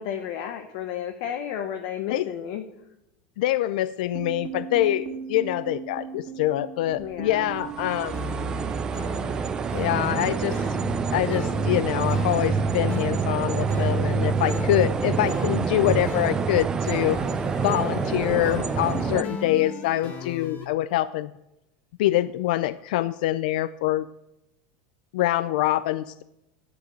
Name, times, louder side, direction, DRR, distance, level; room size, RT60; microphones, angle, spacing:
voice 1, 0.0-2.6 7.0-7.5, left 9 dB, 55° left, 5 dB, 0.9 m, -32 dB
voice 2, 3.4-8.2 9.7-10.6 11.1-17.2 17.6-21.3 22.0-24.1 25.1-26.2, left 14 dB, 70° left, 15 dB, 0.3 m, -25 dB
sound 1, 4.1-16.3, right 7 dB, 55° right, 1.8 m, -38 dB
sound 2, 7.7-19.2, right 5 dB, 15° right, 0.3 m, -27 dB
sound 3, 8.1-20.7, left 5 dB, 35° left, 1.7 m, -38 dB
9.9 x 5.9 x 7.5 m, 0.89 s
supercardioid pair, 155°, 5 cm